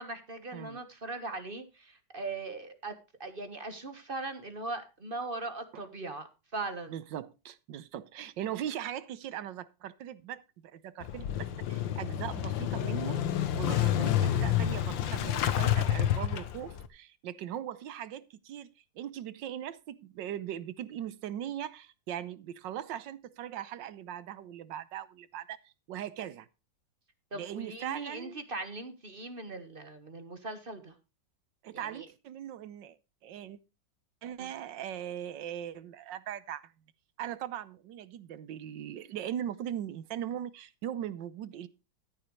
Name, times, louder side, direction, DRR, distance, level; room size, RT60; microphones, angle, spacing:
voice 1, 0.0-6.9 13.7-13.9 27.3-31.0 31.7-32.1 34.4-34.5, right 3 dB, 30° right, 1.4 m, -40 dB
voice 2, 6.9-13.2 13.5-18.7 18.9-26.5 27.3-28.4 31.6-33.0 33.2-33.6 34.2-36.7 37.2-41.7, right 10 dB, 75° right, 1.5 m, -39 dB
Motorcycle / Engine starting, 11.0-16.9, left 11 dB, 80° left, 1.7 m, -29 dB
13.5 x 10.0 x 3.1 m
omnidirectional pair, 2.0 m